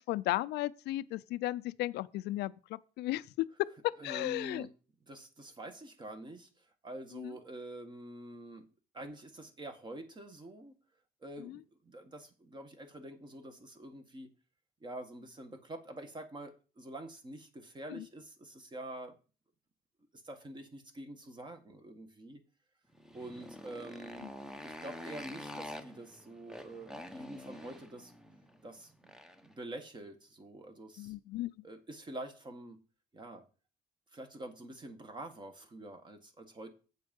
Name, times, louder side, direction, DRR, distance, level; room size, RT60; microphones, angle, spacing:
voice 1, 0.0-3.5 3.8-4.6 31.0-31.5, left 16 dB, 80° left, 0.5 m, -35 dB
voice 2, 4.0-4.7 5.1-8.7 8.9-10.8 11.2-14.3 14.8-19.2 20.1-22.4 23.1-24.3 24.6-28.1 28.6-29.1 29.4-31.1 31.6-32.8 33.1-33.4 34.1-36.7, right 1 dB, 25° right, 1.8 m, -46 dB
Motorcycle, 22.9-29.5, equal, 5° right, 1.0 m, -47 dB
8.1 x 6.5 x 5.4 m
cardioid pair, 110°, 17 cm